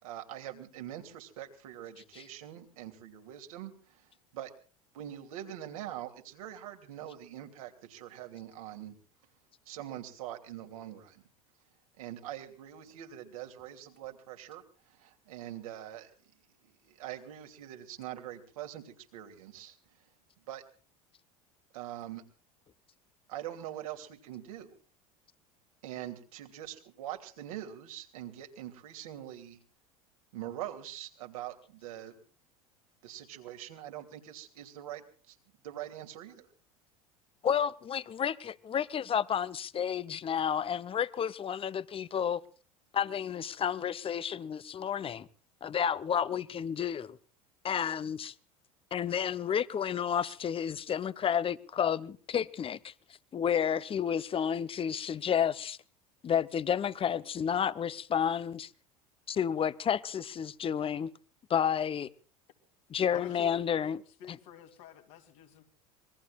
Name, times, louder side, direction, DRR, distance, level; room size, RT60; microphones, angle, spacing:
voice 1, 0.0-4.5 4.9-8.9 9.7-11.2 12.0-16.1 16.6-19.8 20.5-20.6 21.7-22.2 23.3-24.7 25.8-29.6 30.3-32.1 33.0-35.4 35.6-36.5, right 12 dB, 75° right, 2.9 m, -43 dB
voice 2, 37.4-38.3 38.6-42.4 42.9-45.3 45.6-47.2 47.6-48.3 48.9-52.9 53.3-55.8 56.2-58.7 59.3-61.1 61.5-62.1 62.9-64.0 64.3-64.4, left 8 dB, 30° left, 0.9 m, -31 dB
voice 3, 63.1-65.6, left 9 dB, 65° left, 3.4 m, -49 dB
26.5 x 21.0 x 2.5 m
hypercardioid pair, 75°, 18 cm